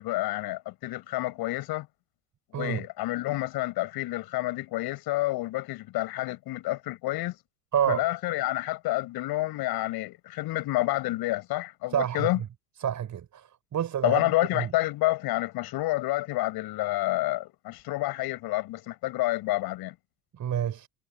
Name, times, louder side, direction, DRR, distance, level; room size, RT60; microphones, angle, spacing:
voice 1, 0.0-1.9 2.5-7.4 7.9-12.4 14.0-19.9, left 18 dB, 55° left, 6.3 m, -29 dB
voice 2, 7.7-8.1 11.9-12.3 12.8-14.7 20.3-20.9, right 9 dB, 40° right, 6.5 m, -29 dB
hypercardioid pair, 70°, 44 cm